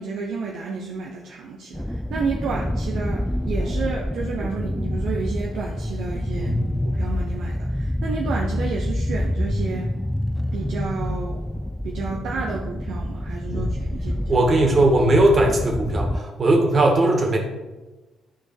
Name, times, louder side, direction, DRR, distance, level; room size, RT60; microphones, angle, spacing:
voice 1, 0.0-6.6 6.8-9.9 10.5-14.4, right 4 dB, 65° right, -1 dB, 0.8 m, -31 dB
sound 1, 1.7-16.2, left 1 dB, 5° left, 0.3 m, -27 dB
voice 2, 14.3-17.4, right 2 dB, 40° right, 1 dB, 2.2 m, -19 dB
12.5 x 4.4 x 4.5 m, 1.2 s
hypercardioid pair, 45°, 0 cm